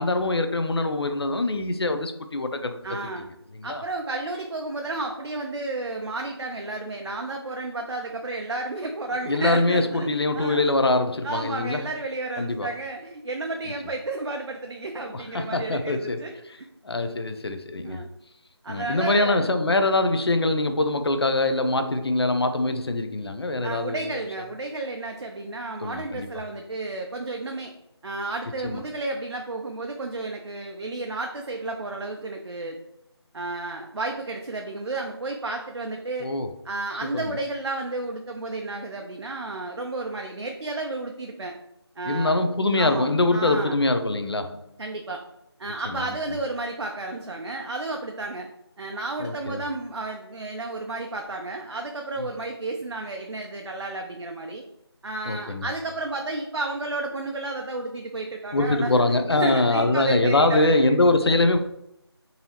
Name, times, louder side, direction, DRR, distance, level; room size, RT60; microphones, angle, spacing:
voice 1, 0.0-3.1 3.5-3.8 9.3-11.8 12.4-12.7 15.1-16.2 16.8-18.0 18.7-24.0 25.8-26.3 28.6-28.8 36.2-36.5 37.1-37.3 42.0-44.6 45.9-46.1 49.2-49.6 52.2-52.3 55.3-55.7 58.5-61.6, left 2 dB, 65° left, 0.4 m, -23 dB
voice 2, 2.8-3.3 3.6-10.1 10.3-10.7 11.2-16.3 17.8-18.1 18.6-19.5 23.6-27.7 28.0-32.8 33.3-36.3 36.6-41.6 42.0-42.4 42.8-43.8 44.8-45.2 45.6-48.5 48.8-54.6 55.0-61.0, right 2 dB, 75° right, 0.5 m, -32 dB
3.9 x 2.7 x 2.9 m
figure-of-eight pair, 180°, 14 cm